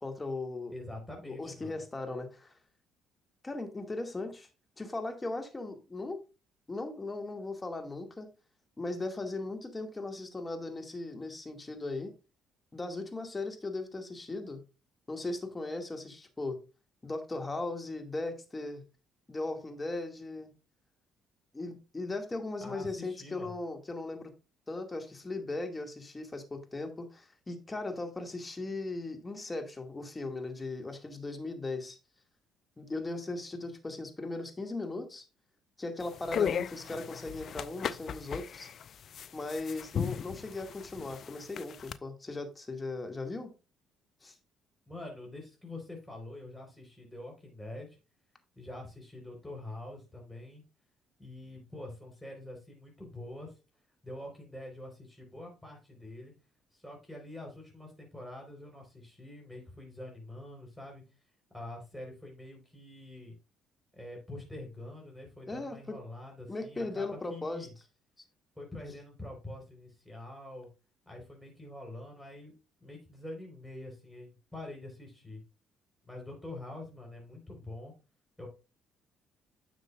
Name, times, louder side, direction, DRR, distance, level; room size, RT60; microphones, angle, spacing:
voice 1, 0.0-0.7 1.3-2.5 3.4-4.5 4.8-6.2 6.7-8.3 8.8-12.1 12.7-14.6 15.1-16.6 17.0-18.8 19.3-20.5 21.5-24.3 24.7-32.0 32.8-35.2 35.8-38.7 39.3-43.5 44.2-44.4 65.5-66.0 66.5-67.7 68.2-68.3, left 2 dB, 25° left, 2.1 m, -38 dB
voice 2, 0.7-1.7 22.6-23.5 44.9-48.0 48.6-50.6 51.2-53.5 54.0-56.3 56.7-61.0 61.5-63.3 63.9-67.7 68.6-70.7 71.1-72.5 72.8-75.4 76.0-77.9 78.4-78.5, left 1 dB, ahead, 4.5 m, -45 dB
sound 1, 36.0-42.0, left 8 dB, 55° left, 0.4 m, -36 dB
10.0 x 6.6 x 2.5 m
hypercardioid pair, 50°, 0 cm